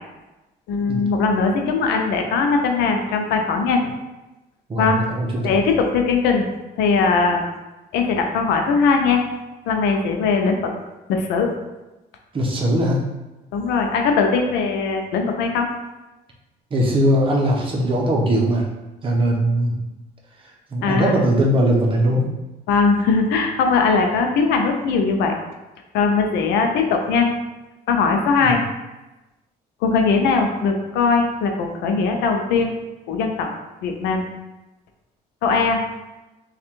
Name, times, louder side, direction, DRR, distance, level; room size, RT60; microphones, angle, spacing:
voice 1, 0.7-3.8 4.8-5.0 5.4-6.5 6.8-7.4 7.9-9.2 9.7-10.7 11.1-11.5 13.5-15.7 20.8-21.1 22.7-25.3 25.9-27.3 27.9-28.6 29.8-32.7 33.1-33.5 33.8-34.2 35.4-35.8, left 4 dB, 90° left, 3 dB, 0.6 m, -20 dB
voice 2, 4.7-5.4 12.3-13.0 16.7-18.7 19.0-19.7 20.7-22.3 28.4-28.5, right 1 dB, 30° right, -2 dB, 0.9 m, -20 dB
3.3 x 2.4 x 4.4 m, 1.0 s
cardioid pair, 110°, 17 cm